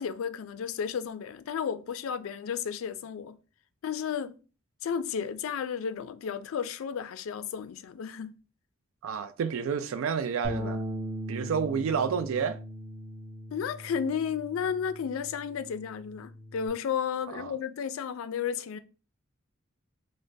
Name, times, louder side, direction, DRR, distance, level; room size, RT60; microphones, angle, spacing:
voice 1, 0.0-3.4 3.8-4.4 4.8-8.4 13.5-18.8, left 7 dB, 80° left, 0.3 m, -33 dB
voice 2, 9.0-10.8 11.3-12.6 17.3-17.5, right 6 dB, 80° right, 0.3 m, -30 dB
Bass guitar, 10.4-16.7, equal, 25° right, 1.9 m, -39 dB
5.0 x 2.1 x 2.6 m
head